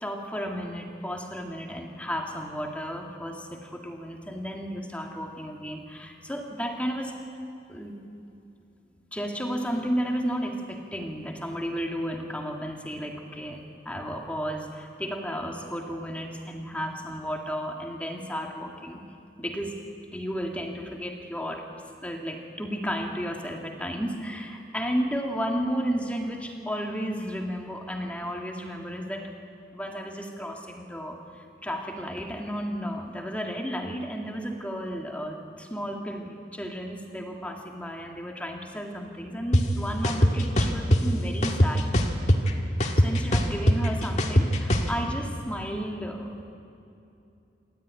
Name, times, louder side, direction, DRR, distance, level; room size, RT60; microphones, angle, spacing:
voice 1, 0.0-7.2 7.7-8.0 9.1-19.0 19.4-19.7 20.1-21.7 22.0-29.3 29.7-41.9 43.0-46.5, equal, 5° left, 1 dB, 1.9 m, -33 dB
sound 1, 39.5-39.6 40.0-41.0 41.4-42.5 42.8-44.9, equal, 40° left, 1.7 m, -20 dB
27.0 x 13.0 x 9.3 m, 2.8 s
head